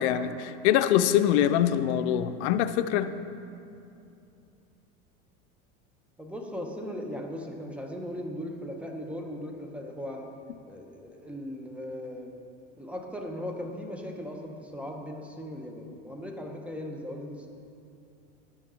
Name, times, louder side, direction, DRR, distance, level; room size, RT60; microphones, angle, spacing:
voice 1, 0.0-3.2, left 10 dB, 85° left, 11 dB, 0.5 m, -24 dB
voice 2, 6.2-10.4 10.7-12.3 12.8-17.5, equal, 5° right, 1 dB, 0.7 m, -38 dB
10.5 x 7.1 x 3.7 m, 2.7 s
supercardioid pair, 125°, 33 cm